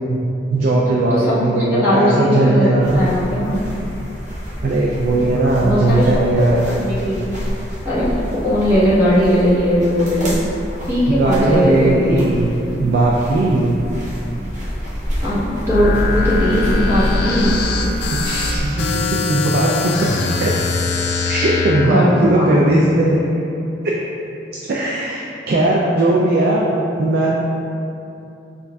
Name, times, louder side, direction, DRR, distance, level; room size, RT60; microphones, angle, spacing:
voice 1, 0.5-3.0 4.6-6.6 11.2-12.5 12.8-13.7 18.1-20.1 20.4-20.5 21.2-23.2 23.8-23.9 24.7-27.3, right 2 dB, 60° right, -3 dB, 0.4 m, -18 dB
voice 2, 1.7-3.6 5.6-7.4 7.8-8.1 8.4-10.3 10.9-12.1 15.2-17.6 21.8-22.8, equal, 15° right, -10 dB, 1.1 m, -18 dB
sound 1, 2.8-18.7, equal, 40° right, 1.0 m, -28 dB
sound 2, 15.7-21.9, left 3 dB, 65° left, 0.4 m, -21 dB
7.0 x 2.5 x 2.2 m, 2.8 s
head